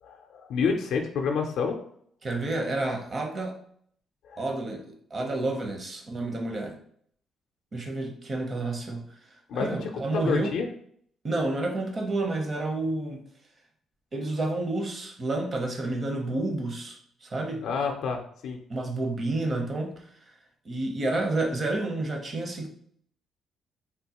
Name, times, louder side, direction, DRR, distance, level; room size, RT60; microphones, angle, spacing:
voice 1, 0.0-1.8 4.3-4.4 9.5-10.7 17.6-18.6, left 5 dB, 80° left, 3 dB, 0.4 m, -29 dB
voice 2, 2.2-3.5 4.4-6.8 7.7-9.1 9.5-10.5 11.2-13.2 14.1-17.6 18.7-20.0 20.6-22.7, right 2 dB, 40° right, 2 dB, 0.7 m, -30 dB
3.6 x 2.2 x 2.9 m, 0.64 s
cardioid pair, 90°, 0 cm